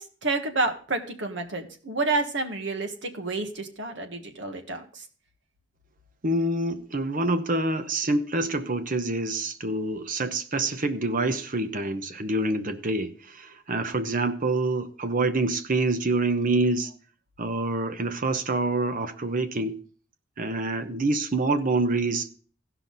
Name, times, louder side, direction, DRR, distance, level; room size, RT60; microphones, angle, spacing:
voice 1, 0.0-5.0, right 3 dB, 70° right, 1.5 m, -29 dB
voice 2, 6.2-16.9 17.4-19.8 20.4-22.3, right 2 dB, 45° right, 0.9 m, -26 dB
15.5 x 5.8 x 4.0 m
head